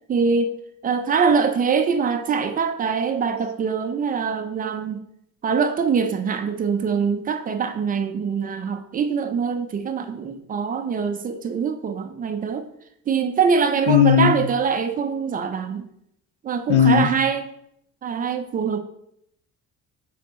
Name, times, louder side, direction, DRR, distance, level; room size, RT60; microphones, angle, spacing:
voice 1, 0.1-0.5 0.8-5.0 5.4-12.7 13.1-15.8 16.4-17.5 18.0-18.8, right 6 dB, 30° right, 0.5 m, -23 dB
voice 2, 13.9-14.4 16.7-17.1, left 8 dB, 80° left, 0.7 m, -16 dB
6.3 x 4.2 x 4.2 m
cardioid pair, 155°, 30 cm